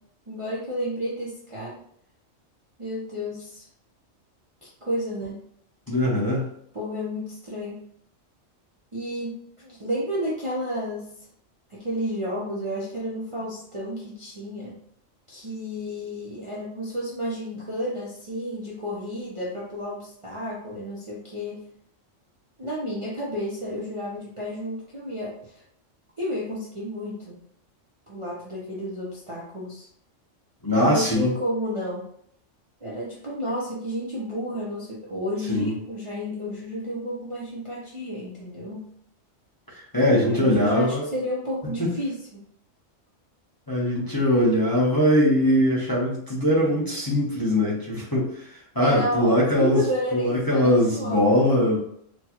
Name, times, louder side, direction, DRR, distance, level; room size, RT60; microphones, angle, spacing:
voice 1, 0.3-1.8 2.8-3.7 4.6-5.4 6.7-7.8 8.9-9.3 9.6-11.1 11.7-14.8 15.3-21.6 22.6-25.5 26.2-27.3 28.1-29.9 30.8-32.1 32.8-38.8 40.1-42.4 48.8-51.6, equal, 30° right, -7 dB, 0.6 m, -31 dB
voice 2, 5.9-6.5 30.6-31.3 35.5-35.7 39.9-41.0 41.8-41.9 43.7-49.8 50.1-51.9, left 1 dB, 20° left, -7 dB, 0.9 m, -21 dB
4.3 x 2.3 x 2.9 m, 0.68 s
omnidirectional pair, 1.3 m